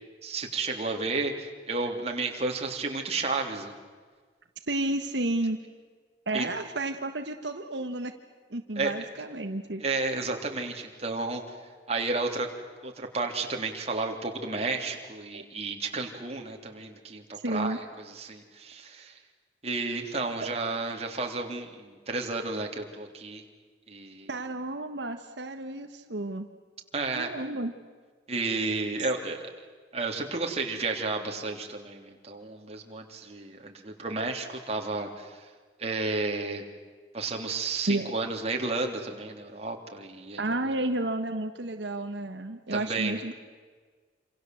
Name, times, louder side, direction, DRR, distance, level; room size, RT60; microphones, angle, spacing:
voice 1, 0.2-3.8 6.3-6.5 8.7-8.9 9.8-11.4 11.9-12.5 12.8-17.8 18.0-19.2 19.6-23.4 23.9-24.3 26.9-27.3 28.3-29.5 29.9-35.5 35.8-36.6 37.1-40.5 42.7-43.2, right 3 dB, 35° right, 2 dB, 3.4 m, -32 dB
voice 2, 4.7-5.6 6.2-8.1 8.5-9.8 15.3-15.4 17.3-17.8 20.4-20.5 24.3-26.5 27.1-27.7 37.9-38.1 40.4-43.3, right 2 dB, 80° right, 6 dB, 1.5 m, -31 dB
27.5 x 27.5 x 7.9 m, 1.5 s
head